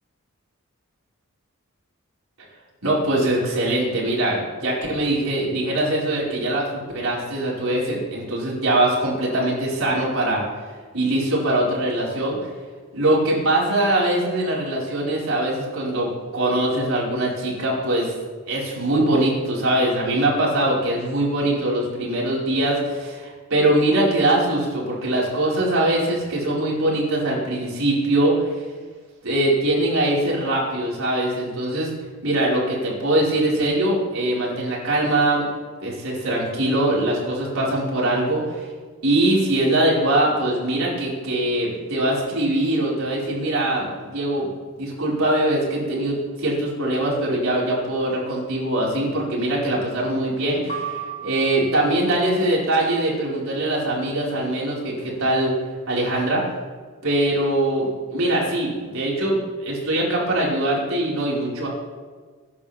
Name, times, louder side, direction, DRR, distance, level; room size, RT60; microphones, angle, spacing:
voice 1, 2.8-10.4 10.9-12.4 12.9-18.1 18.5-28.4 29.2-31.9 32.2-35.4 35.8-38.7 39.0-44.5 44.8-55.5 55.9-56.4 57.0-61.7, right 1 dB, 75° right, -5 dB, 5.2 m, -22 dB
sound 1, 50.7-52.0, right 7 dB, 35° left, 2.3 m, -33 dB
22.5 x 11.0 x 3.6 m, 1.5 s
head